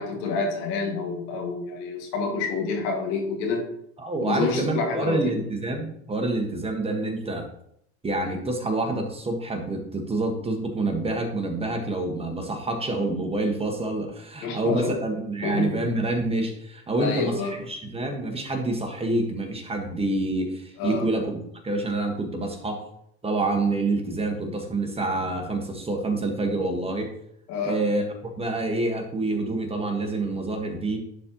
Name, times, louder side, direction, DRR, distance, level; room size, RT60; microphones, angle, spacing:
voice 1, 0.0-3.7 4.2-5.2 14.4-14.9 15.4-15.8 17.0-17.5 20.8-21.2 27.5-27.8, left 4 dB, 75° left, 1 dB, 2.1 m, -28 dB
voice 2, 4.0-7.5 8.0-21.3 21.6-22.8 23.2-27.1 27.6-31.0, right 2 dB, 15° right, 2 dB, 1.4 m, -27 dB
11.0 x 4.3 x 3.0 m, 0.72 s
supercardioid pair, 100°, 33 cm